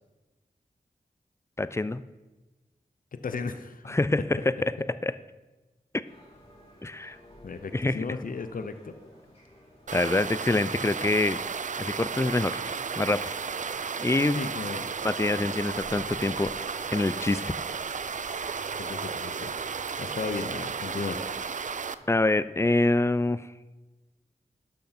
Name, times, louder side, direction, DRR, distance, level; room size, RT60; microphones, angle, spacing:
voice 1, 1.6-2.0 3.9-4.7 5.0-5.2 6.8-7.2 7.7-8.1 9.9-11.4 11.8-13.3 14.0-14.4 15.0-16.5 16.9-17.5 22.1-23.5, left 2 dB, 20° left, 15 dB, 0.4 m, -26 dB
voice 2, 3.1-4.0 7.4-9.0 14.3-14.9 18.8-19.5 20.0-21.2, left 4 dB, 65° left, 9 dB, 0.7 m, -35 dB
sound 1, 6.0-22.4, equal, 40° left, 3.1 m, -53 dB
sound 2, 9.9-22.0, right 6 dB, 55° right, 0.4 m, -34 dB
11.5 x 6.4 x 4.3 m, 1.1 s
cardioid pair, 45°, 15 cm